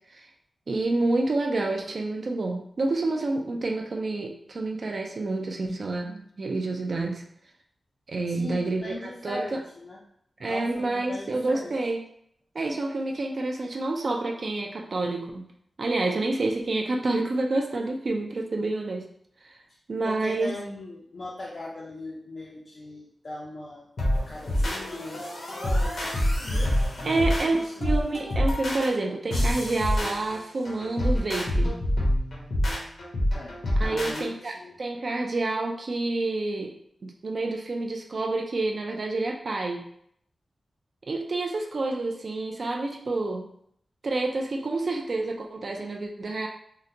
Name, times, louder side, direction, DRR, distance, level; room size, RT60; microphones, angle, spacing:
voice 1, 0.7-7.2 8.1-9.0 9.2-9.6 10.4-12.0 12.5-15.5 15.8-19.1 19.5-19.6 19.9-20.5 27.0-31.8 33.8-36.8 37.0-39.9 41.0-43.5 44.0-46.5, right 2 dB, 45° right, 1 dB, 0.3 m, -28 dB
voice 2, 8.3-10.0 10.5-11.8 19.7-19.8 20.0-23.9 24.3-26.7 27.0-27.7 33.3-34.8, left 2 dB, 45° left, -5 dB, 0.5 m, -39 dB
sound 1, 24.0-34.2, equal, 70° left, 0.9 m, -27 dB
3.7 x 2.1 x 2.7 m, 0.68 s
wide cardioid pair, 170°, 0 cm